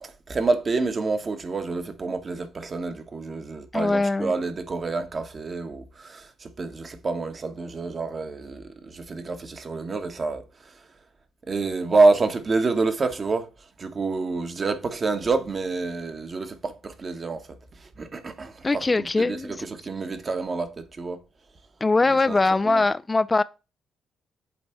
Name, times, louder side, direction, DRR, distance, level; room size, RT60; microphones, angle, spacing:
voice 1, 0.0-10.9 11.5-13.5 13.8-17.5 17.7-21.2 22.1-22.4 22.6-22.8, right 3 dB, 45° right, 1.2 m, -27 dB
voice 2, 3.7-4.3 18.6-19.6 21.8-23.4, left 3 dB, 25° left, 0.3 m, -22 dB
8.3 x 3.3 x 4.3 m
hypercardioid pair, 45°, 0 cm